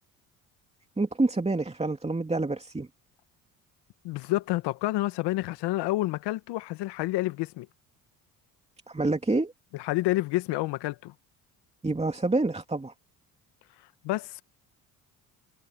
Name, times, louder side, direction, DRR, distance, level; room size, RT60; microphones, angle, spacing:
voice 1, 1.0-2.9 8.9-9.5 11.8-12.9, right 2 dB, 15° right, 2.7 m, -27 dB
voice 2, 4.0-7.7 9.7-11.1 14.0-14.4, left 18 dB, 70° left, 1.5 m, -29 dB
hypercardioid pair, 65°, 42 cm